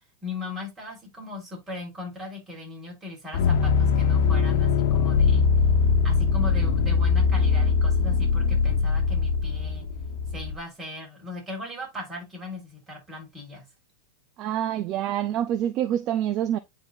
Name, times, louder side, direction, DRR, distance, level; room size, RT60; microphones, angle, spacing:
voice 1, 0.2-5.5 6.0-9.9 10.3-13.6, left 2 dB, 15° right, 4.0 m, -38 dB
sound 1, 3.3-10.5, left 5 dB, 65° left, 1.1 m, -22 dB
voice 2, 14.4-16.6, right 11 dB, 35° right, 0.5 m, -26 dB
9.9 x 4.0 x 2.5 m
supercardioid pair, 155°, 0 cm